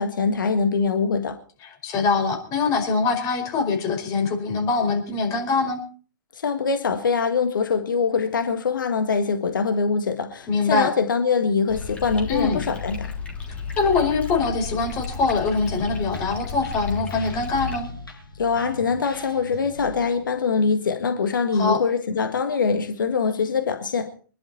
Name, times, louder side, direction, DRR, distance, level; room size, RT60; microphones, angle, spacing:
voice 1, 0.0-1.4 6.3-13.1 18.3-24.2, left 5 dB, 70° left, 1.7 m, -23 dB
voice 2, 1.6-5.8 10.5-10.9 12.3-12.6 13.5-17.9 21.5-21.8, left 4 dB, 30° left, 4.8 m, -23 dB
sound 1, 11.7-17.8, left 5 dB, 10° left, 3.5 m, -33 dB
sound 2, 15.7-21.3, left 1 dB, 90° left, 5.6 m, -42 dB
25.5 x 11.5 x 4.3 m
figure-of-eight pair, 110°, 11 cm